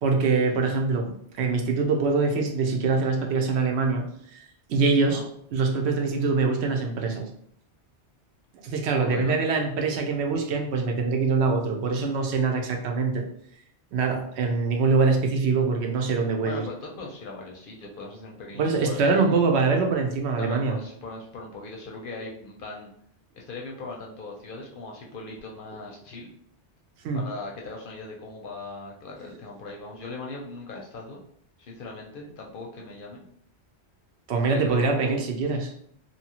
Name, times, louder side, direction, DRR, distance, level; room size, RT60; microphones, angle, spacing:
voice 1, 0.0-4.4 4.7-5.2 5.5-7.3 8.6-13.2 13.9-16.7 18.6-20.8 27.0-27.2 34.3-35.7, right 4 dB, 75° right, 3 dB, 0.8 m, -24 dB
voice 2, 9.0-9.4 16.3-19.4 20.4-22.9 23.3-26.3 27.1-31.2 31.6-33.2 34.4-35.1, left 3 dB, 60° left, -1 dB, 0.6 m, -39 dB
2.8 x 2.2 x 2.8 m, 0.66 s
omnidirectional pair, 1.1 m